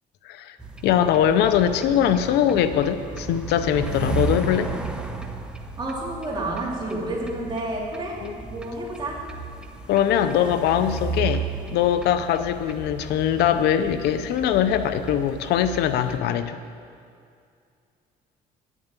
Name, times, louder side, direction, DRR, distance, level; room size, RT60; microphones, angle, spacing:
voice 1, 0.2-0.6 0.8-4.7 8.2-8.3 9.9-11.4 11.7-16.6, left 9 dB, 80° left, 11 dB, 0.6 m, -22 dB
sound 1, 0.6-16.2, right 3 dB, 5° right, 0.9 m, -34 dB
voice 2, 5.8-9.2, right 1 dB, 25° right, -4 dB, 3.1 m, -30 dB
9.8 x 7.3 x 8.2 m, 2.3 s
cardioid pair, 110°, 17 cm